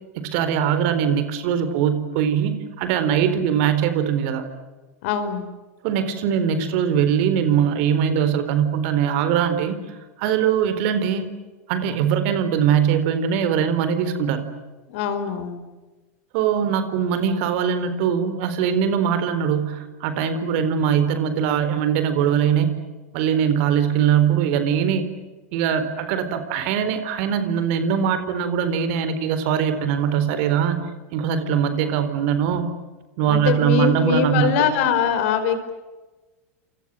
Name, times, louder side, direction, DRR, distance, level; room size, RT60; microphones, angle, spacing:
voice 1, 0.2-4.5 5.8-11.3 11.7-14.5 16.3-22.7 23.1-25.1 25.5-30.8 31.1-32.6 33.2-34.7, right 8 dB, 55° right, 11 dB, 4.1 m, -21 dB
voice 2, 5.0-5.5 14.9-15.6 33.3-35.7, left 7 dB, 60° left, 10 dB, 4.8 m, -22 dB
30.0 x 28.0 x 6.6 m, 1.2 s
figure-of-eight pair, 85°, 8 cm